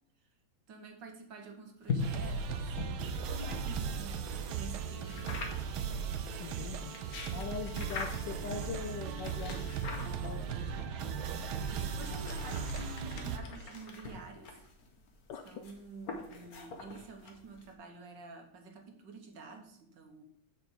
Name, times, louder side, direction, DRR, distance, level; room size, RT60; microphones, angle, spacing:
voice 1, 0.7-5.3 11.7-14.6 15.4-20.2, right 3 dB, 60° right, 3 dB, 1.7 m, -49 dB
sound 1, 1.8-4.0 5.0-5.8 6.7-8.4 9.2-10.5 11.3-17.7, left 4 dB, 50° left, 1.5 m, -42 dB
sound 2, 2.0-13.4, right 6 dB, 75° right, 1.6 m, -37 dB
sound 3, 3.3-12.2, right 1 dB, 20° left, 1.8 m, -52 dB
voice 2, 6.4-7.0 7.3-9.9 10.2-10.9 15.3-15.4, left 7 dB, 70° left, 7 dB, 1.1 m, -42 dB
7.2 x 5.2 x 6.8 m, 0.69 s
omnidirectional pair, 2.3 m